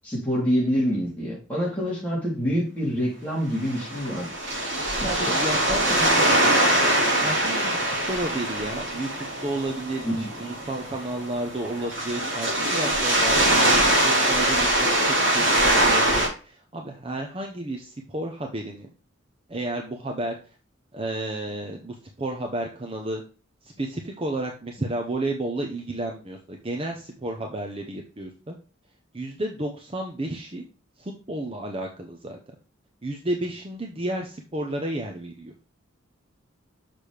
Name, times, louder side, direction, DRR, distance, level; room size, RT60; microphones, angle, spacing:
voice 1, 0.0-4.3 5.2-5.3 10.0-10.3, equal, 5° left, -6 dB, 3.0 m, -26 dB
sound 1, 3.6-16.3, right 1 dB, 60° right, 3.1 m, -23 dB
voice 2, 4.5-6.3 7.2-18.9 19.5-20.4 20.9-23.2 23.6-28.6 29.1-30.6 31.0-32.4 33.0-35.5, right 1 dB, 25° right, 2 dB, 0.7 m, -32 dB
6.7 x 5.8 x 3.3 m, 0.37 s
head